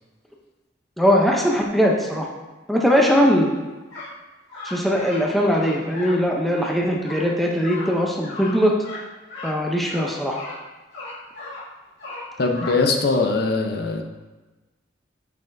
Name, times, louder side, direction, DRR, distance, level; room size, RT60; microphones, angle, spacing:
voice 1, 1.0-2.3 2.7-3.6 4.6-8.7 9.4-10.4, equal, ahead, -1 dB, 0.5 m, -20 dB
sound 1, 3.9-4.1 4.5-5.2 5.5-6.1 6.5-6.7 7.0-7.2 7.6-7.9 8.2-8.5 8.8-9.0 9.3-9.5 9.9-10.6 10.9-11.6 12.0-12.7, left 3 dB, 75° left, 2.1 m, -36 dB
voice 2, 12.4-14.0, left 3 dB, 55° left, 3 dB, 0.6 m, -21 dB
7.5 x 5.6 x 2.6 m, 1.2 s
head